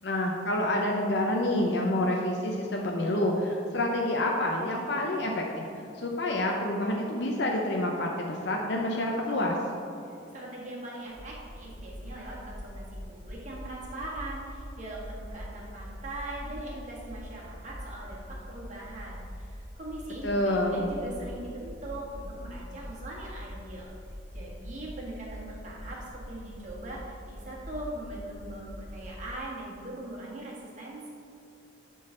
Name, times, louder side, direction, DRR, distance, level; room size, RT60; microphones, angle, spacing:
voice 1, 0.0-5.7 6.0-9.6 20.2-20.9, left 1 dB, 60° left, -1 dB, 0.7 m, -28 dB
voice 2, 10.0-23.9 24.3-31.1, right 1 dB, 40° right, -4 dB, 1.6 m, -41 dB
sound 1, 11.0-29.3, equal, 20° left, 1.3 m, -43 dB
11.5 x 3.9 x 3.8 m, 2.7 s
head